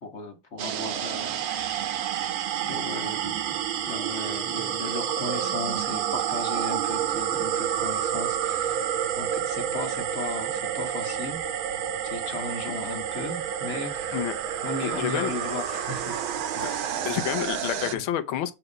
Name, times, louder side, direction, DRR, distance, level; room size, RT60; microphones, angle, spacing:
voice 1, 0.0-2.3 2.6-11.4 12.0-14.2 14.6-16.2 16.5-17.0 17.9-18.0, left 3 dB, 40° left, 1.2 m, -36 dB
sound 1, 0.6-17.9, right 10 dB, 85° right, 1.6 m, -29 dB
voice 2, 14.8-15.3 16.6-16.7 17.0-18.5, left 11 dB, 85° left, 1.5 m, -29 dB
7.7 x 3.1 x 5.0 m
omnidirectional pair, 2.2 m